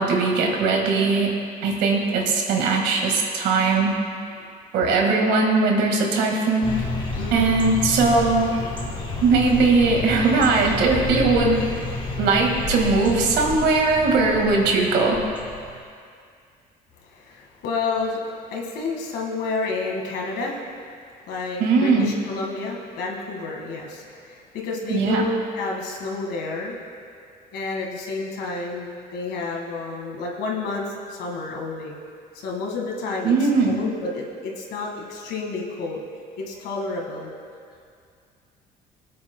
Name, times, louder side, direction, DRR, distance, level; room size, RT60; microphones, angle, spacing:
voice 1, 0.0-1.3 1.6-4.0 4.7-6.8 7.3-8.5 9.2-11.6 12.2-15.2 21.6-22.1 24.9-25.3 33.2-33.8, right 3 dB, 80° right, 1 dB, 1.8 m, -20 dB
sound 1, 6.6-15.8, left 3 dB, 30° left, 1.9 m, -30 dB
voice 2, 7.1-7.6 17.0-20.7 21.3-26.8 27.5-32.0 32.3-36.0 36.4-37.3, left 3 dB, 80° left, 0 dB, 1.7 m, -30 dB
22.0 x 8.6 x 2.2 m, 2.3 s
cardioid pair, 110°, 17 cm